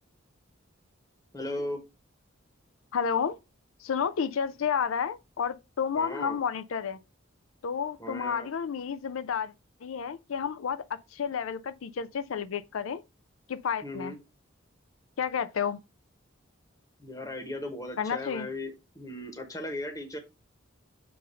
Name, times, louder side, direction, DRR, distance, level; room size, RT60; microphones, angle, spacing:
voice 1, 1.3-1.8 6.0-6.4 8.0-8.5 13.8-14.2 17.0-20.2, left 1 dB, 15° left, 1.1 m, -37 dB
voice 2, 2.9-3.4 3.8-7.0 7.6-9.5 9.8-13.0 13.5-14.1 15.2-15.8 18.0-18.5, left 7 dB, 85° left, 0.4 m, -31 dB
6.6 x 2.7 x 5.3 m
head